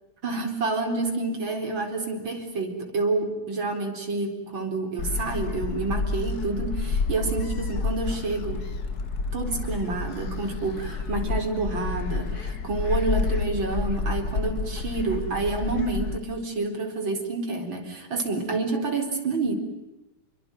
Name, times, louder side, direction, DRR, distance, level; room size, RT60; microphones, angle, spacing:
voice 1, 0.2-8.6 9.3-19.5, right 3 dB, 60° right, 5 dB, 5.0 m, -28 dB
Gull seagull, 5.0-16.2, left 4 dB, 45° left, 2.2 m, -29 dB
28.5 x 23.0 x 9.1 m, 0.97 s
omnidirectional pair, 2.4 m